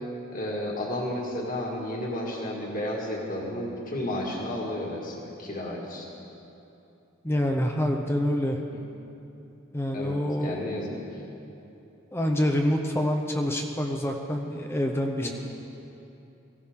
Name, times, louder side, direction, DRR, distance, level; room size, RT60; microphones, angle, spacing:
voice 1, 0.3-6.1 8.7-8.8 9.9-10.9 15.2-15.3, left 1 dB, 40° left, -2 dB, 1.9 m, -32 dB
voice 2, 7.2-8.6 9.7-10.8 12.1-15.3, left 1 dB, 10° left, 3 dB, 0.7 m, -26 dB
18.0 x 15.5 x 3.7 m, 2.9 s
head